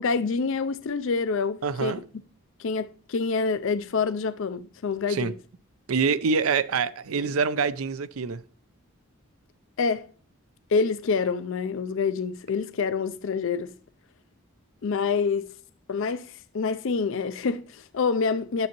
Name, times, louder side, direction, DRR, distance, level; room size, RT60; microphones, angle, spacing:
voice 1, 0.0-2.0 2.6-5.3 9.8-10.1 10.7-13.7 14.8-15.5 15.9-18.7, left 5 dB, 65° left, 0.5 m, -27 dB
voice 2, 1.6-2.0 5.1-5.3 5.9-8.4, right 5 dB, 80° right, 0.5 m, -25 dB
10.5 x 7.0 x 3.0 m
head